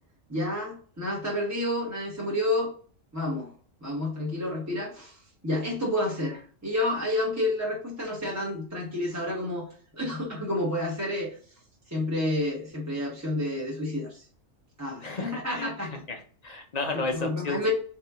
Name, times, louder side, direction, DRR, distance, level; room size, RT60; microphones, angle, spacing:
voice 1, 0.3-2.7 3.1-3.5 3.8-9.7 9.9-11.4 11.9-14.3 14.8-16.0 17.1-17.7, left 1 dB, 15° right, -4 dB, 0.9 m, -30 dB
voice 2, 15.0-15.7 16.1-17.7, left 3 dB, 45° left, 3 dB, 0.5 m, -33 dB
4.3 x 2.8 x 3.4 m, 0.44 s
omnidirectional pair, 1.4 m